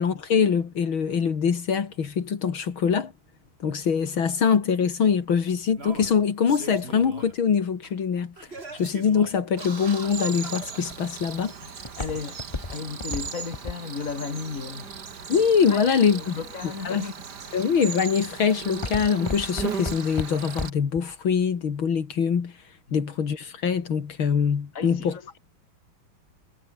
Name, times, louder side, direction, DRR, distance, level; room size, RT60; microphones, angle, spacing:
voice 1, 0.0-3.1 3.6-8.3 8.8-11.5 15.3-16.3 16.8-17.0 17.5-22.5 22.9-25.2, left 6 dB, 75° left, 3.0 m, -23 dB
Singing, 3.9-4.0 5.0-5.1 5.7-7.4 7.8-7.9 8.4-10.9 11.7-11.8, right 3 dB, 30° right, 2.7 m, -42 dB
Cricket, 9.6-20.7, right 6 dB, 55° right, 2.5 m, -37 dB
Walk footsteps, 10.9-15.8 16.4-16.9 17.4-17.8 18.1-21.0 21.3-21.4, left 3 dB, 20° left, 0.9 m, -34 dB
voice 2, 12.0-12.4 12.7-15.0 15.7-17.1 17.5-17.6 22.9-23.1 24.7-25.4, left 5 dB, 40° left, 2.8 m, -35 dB
omnidirectional pair, 2.3 m